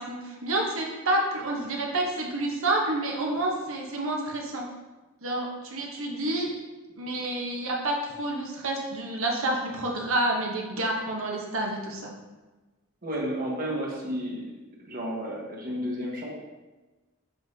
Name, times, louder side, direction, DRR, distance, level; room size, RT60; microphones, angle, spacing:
voice 1, 0.0-4.7 5.2-6.5 7.0-12.0, right 1 dB, 65° right, 0 dB, 1.0 m, -29 dB
voice 2, 13.0-14.4 14.8-16.3, equal, 40° right, -2 dB, 1.3 m, -32 dB
10.0 x 4.0 x 2.8 m, 1.2 s
head